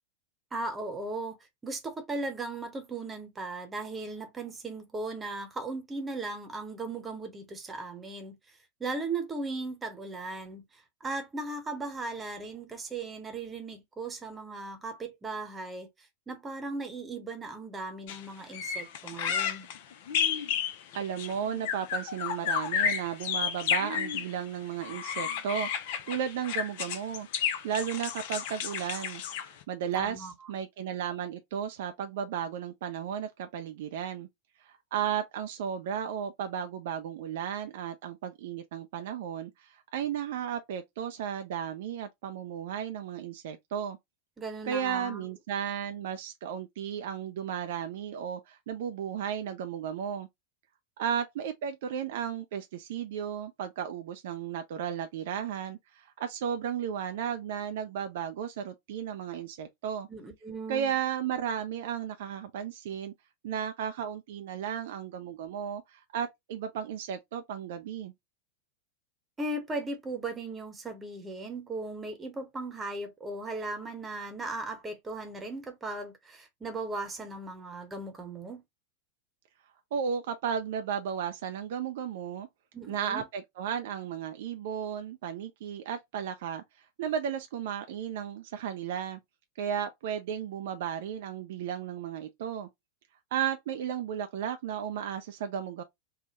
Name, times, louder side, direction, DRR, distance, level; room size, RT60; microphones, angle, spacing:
voice 1, 0.5-1.4 1.6-8.4 8.8-10.6 11.0-15.9 16.3-19.7 29.9-30.3 44.4-45.3 60.1-60.9 69.4-78.6 82.7-83.3, right 3 dB, 15° right, 0.9 m, -37 dB
sound 1, 18.1-18.2 18.5-24.3 24.8-29.6, left 8 dB, 50° left, 0.5 m, -32 dB
voice 2, 20.9-25.7 26.1-27.3 27.6-34.3 34.6-44.0 44.6-50.3 51.0-60.1 60.7-63.1 63.4-68.1 79.9-82.5 82.9-89.2 89.6-92.7 93.3-95.8, right 8 dB, 55° right, 0.4 m, -34 dB
3.4 x 2.1 x 2.9 m
figure-of-eight pair, 90°, 0 cm